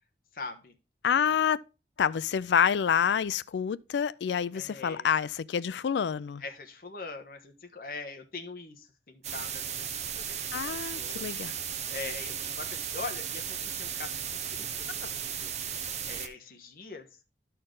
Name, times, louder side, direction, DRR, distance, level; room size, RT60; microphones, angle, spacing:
voice 1, 0.3-0.7 1.3-1.4 4.5-5.1 6.4-11.5 11.9-17.1, left 4 dB, 55° left, 1.2 m, -43 dB
voice 2, 1.0-1.6 2.0-6.4 10.5-11.5, left 7 dB, 85° left, 0.4 m, -27 dB
sound 1, 9.2-16.3, right 8 dB, 40° right, 0.8 m, -35 dB
13.0 x 4.5 x 3.8 m
head